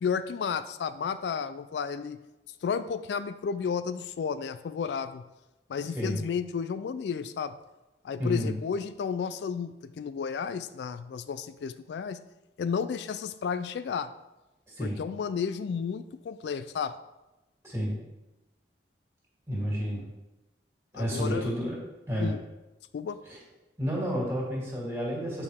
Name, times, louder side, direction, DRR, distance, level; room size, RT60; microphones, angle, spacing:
voice 1, 0.0-2.2 2.6-5.2 5.7-7.6 8.0-12.2 12.6-14.1 14.8-16.9 19.9-20.1 20.9-21.5 22.2-22.4 22.9-23.2, left 6 dB, 75° left, 13 dB, 0.3 m, -32 dB
voice 2, 8.2-8.5 14.7-15.0 17.6-17.9 19.5-20.0 20.9-21.8 22.1-22.3 23.3-23.4 23.8-25.4, equal, 15° right, -5 dB, 2.4 m, -30 dB
8.7 x 4.7 x 3.5 m, 1.0 s
head